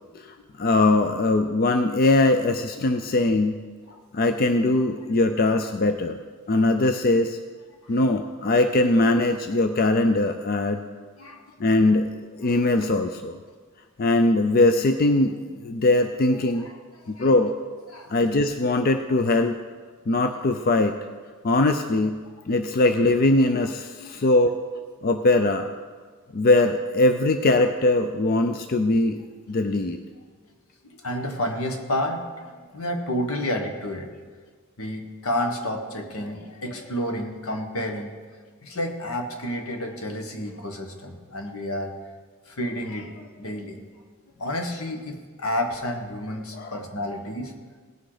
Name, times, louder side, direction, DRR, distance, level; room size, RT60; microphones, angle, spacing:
voice 1, 0.2-3.6 4.1-6.2 6.5-7.4 7.9-10.9 11.6-12.1 12.4-13.4 14.0-16.7 17.1-17.5 18.1-19.6 20.1-21.0 21.4-22.1 22.5-24.5 25.0-25.7 26.3-29.2 29.5-30.0 46.5-46.8, left 2 dB, 45° left, 7 dB, 0.4 m, -21 dB
voice 2, 11.2-11.6 16.3-16.7 17.0-17.3 17.9-18.1 20.3-20.4 24.0-24.1 31.0-34.1 34.8-38.1 38.6-41.9 42.5-43.8 44.4-47.5, left 1 dB, 75° left, 4 dB, 1.4 m, -30 dB
17.5 x 6.2 x 4.9 m, 1.5 s
head